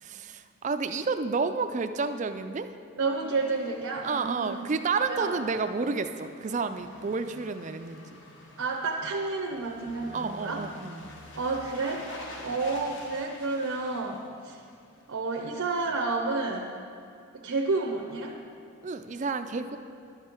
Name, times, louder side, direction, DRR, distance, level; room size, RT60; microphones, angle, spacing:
voice 1, 0.0-2.7 4.0-8.2 10.1-11.1 18.8-19.8, right 4 dB, 35° right, 9 dB, 0.4 m, -30 dB
voice 2, 3.0-5.6 8.6-10.6 11.4-12.0 12.4-14.2 14.4-14.6 15.1-16.7 17.4-18.3, right 3 dB, 85° right, 1 dB, 0.7 m, -30 dB
sound 1, 3.3-15.2 15.5-15.6, left 1 dB, 60° left, 1.0 m, -48 dB
11.5 x 7.4 x 4.4 m, 2.4 s
head